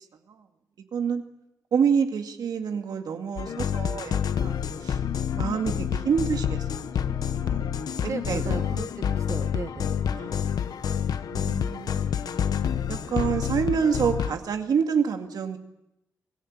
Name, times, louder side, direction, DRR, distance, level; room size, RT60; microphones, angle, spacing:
voice 1, 0.9-1.2 1.7-4.6 4.8-5.0 5.3-7.8 8.3-8.7 10.1-12.3 12.9-15.6, right 6 dB, 90° right, 5 dB, 2.2 m, -28 dB
sound 1, 3.4-14.3, left 8 dB, 85° left, 1.1 m, -28 dB
voice 2, 8.0-10.4, right 5 dB, 50° right, 8 dB, 1.1 m, -37 dB
25.5 x 18.5 x 8.7 m, 0.88 s
wide cardioid pair, 150°, 6 cm